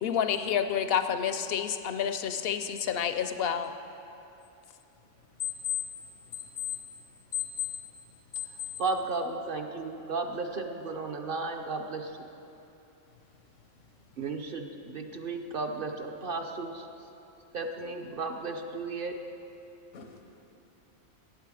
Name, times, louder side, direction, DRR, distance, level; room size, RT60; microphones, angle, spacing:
voice 1, 0.0-3.7, left 8 dB, 65° left, 10 dB, 0.7 m, -29 dB
voice 2, 7.3-7.8 8.3-8.7 19.9-20.2, left 11 dB, 85° left, 3 dB, 1.2 m, -35 dB
voice 3, 8.8-12.1 14.2-16.9 17.5-19.1, right 3 dB, 50° right, 4 dB, 0.8 m, -34 dB
14.5 x 9.0 x 4.9 m, 2.8 s
omnidirectional pair, 1.3 m